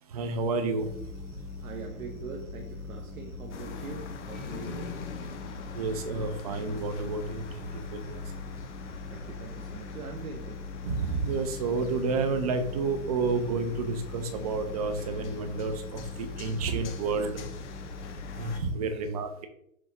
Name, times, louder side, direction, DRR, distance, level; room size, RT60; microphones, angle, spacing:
voice 1, 0.1-0.9 5.7-7.6 7.9-8.2 10.8-17.4 18.4-19.5, right 4 dB, 30° right, 8 dB, 0.4 m, -30 dB
sound 1, 0.8-18.7, left 3 dB, 85° left, 1.2 m, -41 dB
voice 2, 1.6-5.1 9.1-10.7 18.7-19.1, right 5 dB, 75° right, 2 dB, 0.8 m, -43 dB
sound 2, 3.5-18.6, left 6 dB, 55° left, 0.7 m, -45 dB
6.3 x 2.8 x 3.0 m, 0.75 s
hypercardioid pair, 125°, 43 cm